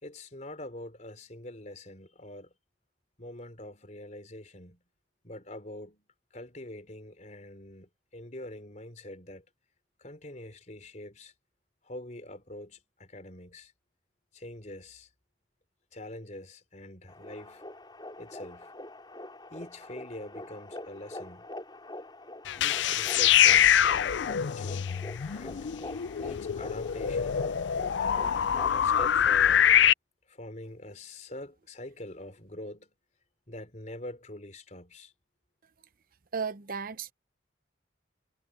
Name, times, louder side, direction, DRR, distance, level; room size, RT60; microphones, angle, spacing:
voice 1, 0.0-2.5 3.2-4.8 5.2-9.5 10.0-11.3 11.8-13.7 14.3-15.1 15.9-17.7 18.2-18.7 19.5-21.5 22.6-25.7 26.2-27.5 28.7-29.7 30.3-32.9 33.5-35.1, left 1 dB, 40° left, 4.3 m, -44 dB
sound 1, 17.1-29.2, left 1 dB, 25° left, 4.1 m, -44 dB
sound 2, 22.5-29.9, left 9 dB, 80° left, 0.4 m, -24 dB
voice 2, 36.3-37.1, right 5 dB, 50° right, 0.8 m, -34 dB
head